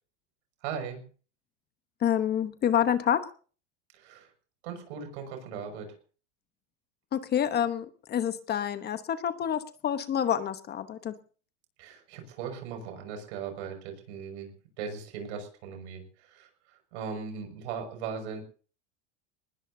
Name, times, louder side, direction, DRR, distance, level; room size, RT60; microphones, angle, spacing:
voice 1, 0.6-1.0 3.9-4.3 4.6-5.9 11.8-14.5 14.8-18.4, right 6 dB, 70° right, 6 dB, 6.0 m, -38 dB
voice 2, 2.0-3.2 7.1-11.1, left 9 dB, 30° left, 11 dB, 1.0 m, -28 dB
20.0 x 20.0 x 2.7 m, 0.40 s
supercardioid pair, 125°, 35 cm